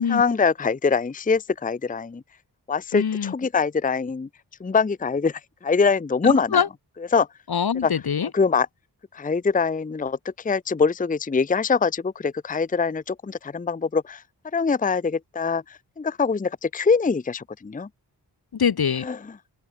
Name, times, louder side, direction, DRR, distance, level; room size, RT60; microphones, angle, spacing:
voice 1, 0.1-2.2 2.7-4.3 4.6-6.6 7.1-7.3 7.8-7.9 8.3-8.7 9.1-14.2 14.5-17.9 19.0-19.2, left 5 dB, 20° left, 0.6 m, -23 dB
voice 2, 2.9-3.3 6.2-6.7 7.5-8.3 18.5-19.1, left 7 dB, 70° left, 1.2 m, -23 dB
open air
wide cardioid pair, 70°, 40 cm